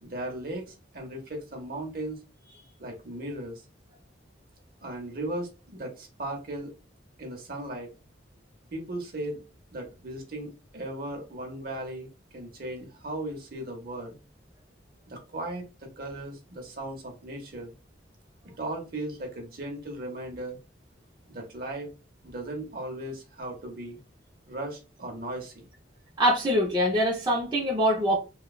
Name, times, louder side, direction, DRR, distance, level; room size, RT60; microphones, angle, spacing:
voice 1, 0.0-2.2 2.8-3.6 4.8-6.7 7.2-7.9 8.7-9.4 9.7-14.2 15.1-17.7 18.6-20.6 21.3-21.9 22.2-24.0 24.5-25.7, right 1 dB, 50° right, 2 dB, 0.8 m, -37 dB
voice 2, 26.2-28.2, equal, 25° right, -3 dB, 0.6 m, -24 dB
3.0 x 2.3 x 2.3 m, 0.30 s
head